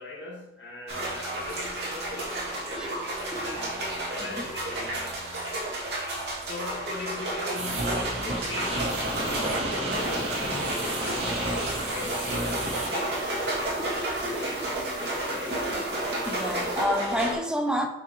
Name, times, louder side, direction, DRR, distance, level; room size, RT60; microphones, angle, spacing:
voice 1, 0.0-5.2 6.4-15.8, left 2 dB, 85° left, 1.9 m, -41 dB
sound 1, 0.9-17.3, right 1 dB, 75° right, 2.5 m, -31 dB
sound 2, 7.5-12.9, right 1 dB, 90° right, 2.3 m, -31 dB
sound 3, 9.9-16.9, right 2 dB, 25° right, 1.0 m, -46 dB
voice 2, 16.2-17.9, equal, 5° right, 0.5 m, -29 dB
8.4 x 4.9 x 3.2 m
head